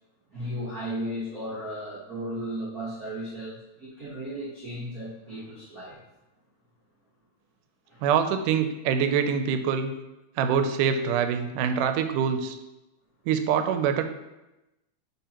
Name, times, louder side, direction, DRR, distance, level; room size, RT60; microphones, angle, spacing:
voice 1, 0.3-6.0 7.9-8.1, equal, 50° right, -9 dB, 1.0 m, -35 dB
voice 2, 8.0-9.9 10.4-12.6 13.3-14.0, right 7 dB, 90° right, 8 dB, 2.1 m, -24 dB
9.1 x 4.3 x 2.9 m, 0.98 s
omnidirectional pair, 3.6 m